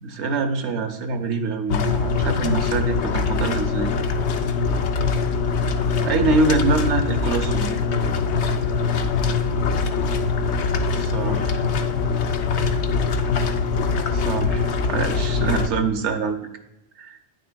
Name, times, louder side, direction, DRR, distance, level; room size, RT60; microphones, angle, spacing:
voice 1, 0.0-3.9 6.0-7.7 10.9-11.6 14.1-16.5 17.0-17.2, right 4 dB, 90° right, 7 dB, 1.1 m, -25 dB
sound 1, 1.7-15.7, left 4 dB, 75° left, 0.9 m, -23 dB
9.3 x 6.6 x 2.2 m, 0.90 s
omnidirectional pair, 1.1 m